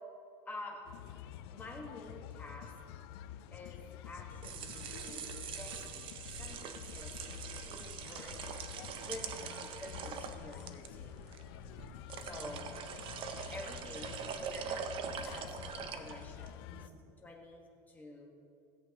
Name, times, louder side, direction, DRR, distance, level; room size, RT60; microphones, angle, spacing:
voice 1, 0.4-0.9 1.5-2.7 3.5-5.2 5.6-5.8 6.4-8.6 9.0-11.3 12.3-12.8 13.5-16.9 17.2-18.3, left 2 dB, 15° left, -1 dB, 1.5 m, -49 dB
sound 1, 0.8-16.9, left 11 dB, 90° left, 0.4 m, -49 dB
sound 2, 4.2-16.6, right 7 dB, 45° right, 0.7 m, -43 dB
sound 3, 11.8-12.0 12.4-12.7 13.3-13.6 13.9-14.3 15.0-15.3 15.8-16.2 16.8-17.2, right 4 dB, 65° right, 1.9 m, -56 dB
16.5 x 8.1 x 3.0 m, 2.5 s
cardioid pair, 145°, 13 cm